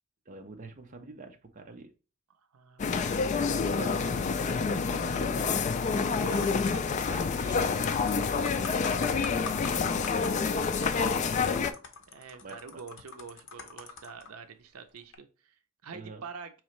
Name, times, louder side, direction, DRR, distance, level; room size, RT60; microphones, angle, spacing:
voice 1, 0.3-1.9 3.7-5.7 8.8-9.6 10.0-10.8 12.4-12.8 15.9-16.2, right 2 dB, 40° right, 0.6 m, -45 dB
voice 2, 2.5-3.8 6.2-8.1 11.4-11.8 12.1-16.6, right 5 dB, 80° right, 0.5 m, -46 dB
sound 1, 2.8-11.7, left 5 dB, 35° left, 0.3 m, -28 dB
sound 2, 7.9-14.3 15.0-15.2, left 5 dB, 60° left, 0.7 m, -43 dB
4.7 x 3.1 x 3.0 m
head